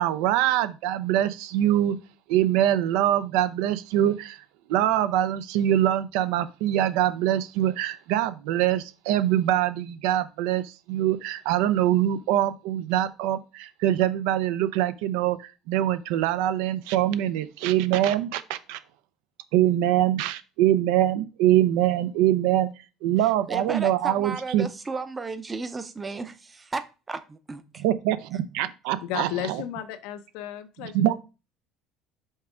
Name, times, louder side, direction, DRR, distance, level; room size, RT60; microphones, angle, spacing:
voice 1, 0.0-2.0 2.3-4.4 4.7-18.8 19.5-22.7 23.0-24.7 27.8-29.6 30.8-31.1, right 12 dB, 80° right, 0.5 m, -24 dB
voice 2, 23.2-27.8, right 4 dB, 15° right, 0.6 m, -34 dB
voice 3, 29.0-31.1, left 11 dB, 75° left, 0.6 m, -34 dB
5.4 x 3.5 x 4.9 m
cardioid pair, 150°, 0 cm